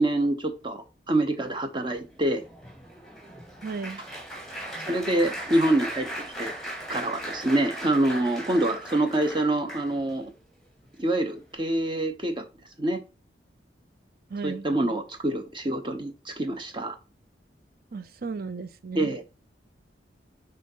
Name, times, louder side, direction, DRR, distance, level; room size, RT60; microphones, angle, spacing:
voice 1, 0.0-2.4 4.9-6.5 6.9-10.3 11.0-12.4 12.8-13.0 14.4-17.0 18.9-19.2, right 1 dB, 25° right, 0.8 m, -26 dB
Applause, 1.9-10.2 10.8-11.1 11.4-11.5, right 1 dB, 5° left, 2.1 m, -38 dB
voice 2, 3.6-4.0 14.3-14.7 17.9-19.1, right 4 dB, 55° right, 0.6 m, -34 dB
6.3 x 3.8 x 5.4 m
head